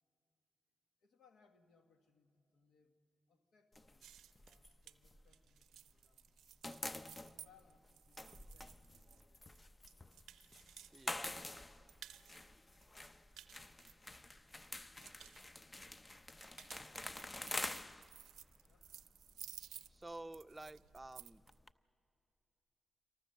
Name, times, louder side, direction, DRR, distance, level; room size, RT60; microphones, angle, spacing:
voice 1, 1.0-3.0 3.3-4.1 4.4-6.4 7.1-10.0 18.6-18.9, left 6 dB, 70° left, 8 dB, 1.6 m, -72 dB
sound 1, 3.7-6.0 6.3-21.7, left 2 dB, 25° left, 0.7 m, -49 dB
sound 2, 4.0-11.1 11.4-12.4 12.8-14.5 14.8-15.4 16.2-21.5, right 11 dB, 75° right, 0.5 m, -57 dB
voice 2, 10.9-11.3 19.9-21.4, right 2 dB, 20° right, 12 dB, 0.6 m, -51 dB
27.0 x 24.0 x 6.7 m, 2.8 s
hypercardioid pair, 40°, 0 cm